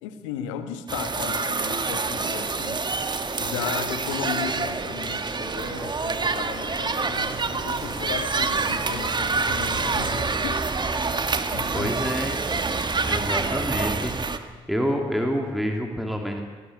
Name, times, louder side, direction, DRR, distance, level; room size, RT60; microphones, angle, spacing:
voice 1, 0.0-2.9 3.4-10.6 11.5-12.0 13.1-13.6, left 8 dB, 75° left, 9 dB, 1.5 m, -35 dB
sound 1, 0.9-14.4, right 4 dB, 30° right, 1.7 m, -27 dB
sound 2, 1.1-1.6 2.0-2.4 2.8-3.4 3.7-3.8 4.0-4.5 5.0-5.5 6.1-6.4 7.0-8.1 8.4-9.2 9.8-10.5 11.2-11.5, right 2 dB, 85° right, 4.0 m, -53 dB
sound 3, 7.7-13.4, right 4 dB, 45° right, 4.8 m, -50 dB
voice 2, 11.7-12.4 13.1-14.4 14.7-16.4, equal, ahead, 2 dB, 3.0 m, -27 dB
20.0 x 17.5 x 8.5 m, 1.4 s
figure-of-eight pair, 45°, 16 cm